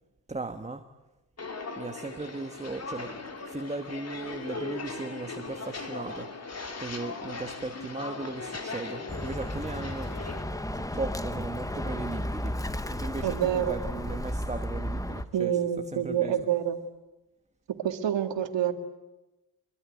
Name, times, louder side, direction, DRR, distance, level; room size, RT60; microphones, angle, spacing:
voice 1, 0.3-0.9 1.8-3.2 3.5-6.4 6.8-10.2 10.7-16.5, right 3 dB, 15° right, 1.2 m, -37 dB
Walk footsteps, 1.4-10.4, left 3 dB, 35° left, 3.1 m, -39 dB
Bird, 9.1-15.3, left 1 dB, 10° left, 1.1 m, -34 dB
voice 2, 13.2-13.7 15.3-16.8 17.7-18.7, right 10 dB, 80° right, 2.3 m, -27 dB
25.0 x 23.0 x 9.6 m
cardioid pair, 115°, 43 cm